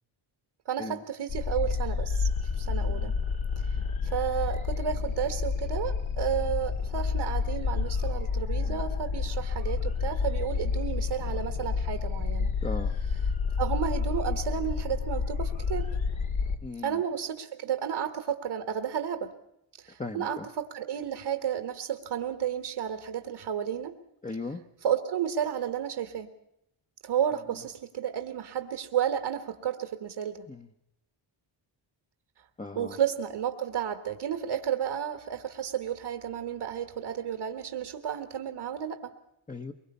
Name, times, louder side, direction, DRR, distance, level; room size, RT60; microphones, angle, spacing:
voice 1, 0.6-3.1 3.6-12.5 13.6-15.9 16.8-19.3 19.8-24.0 24.8-26.3 27.0-30.4 32.7-39.1, right 9 dB, 70° right, 6 dB, 1.6 m, -32 dB
sound 1, 1.3-16.6, left 5 dB, 70° left, 2.3 m, -29 dB
voice 2, 12.6-12.9 16.6-17.0 20.0-20.5 24.2-24.6 30.5-30.7 32.6-33.0 39.5-39.7, left 3 dB, 15° left, 3 dB, 0.9 m, -38 dB
23.5 x 22.0 x 5.5 m, 0.80 s
wide cardioid pair, 130°, 49 cm